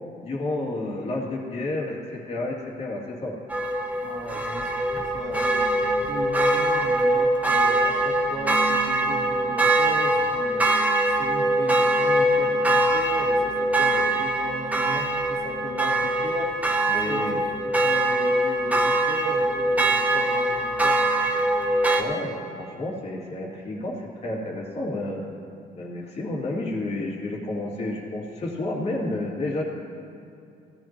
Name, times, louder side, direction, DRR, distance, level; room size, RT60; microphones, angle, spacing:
voice 1, 0.2-3.4 16.9-17.4 22.0-25.2 25.7-29.6, left 2 dB, 40° left, -3 dB, 2.6 m, -30 dB
sound 1, 3.5-22.0, right 1 dB, 10° right, 1.0 m, -23 dB
voice 2, 4.0-5.7 6.1-10.7 11.1-16.6 17.0-17.4 17.8-21.7, right 2 dB, 40° right, -3 dB, 2.6 m, -36 dB
15.5 x 14.5 x 3.0 m, 2.5 s
cardioid pair, 110°, 17 cm